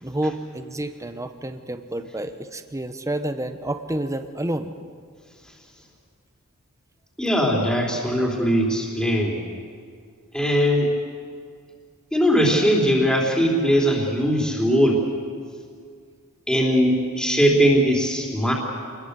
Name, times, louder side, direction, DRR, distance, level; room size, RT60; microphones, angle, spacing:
voice 1, 0.0-4.8, right 1 dB, 15° right, 9 dB, 1.0 m, -29 dB
voice 2, 7.2-9.4 10.3-10.9 12.1-15.0 16.5-18.5, equal, 5° left, -2 dB, 3.7 m, -20 dB
28.0 x 21.5 x 8.3 m, 2.1 s
head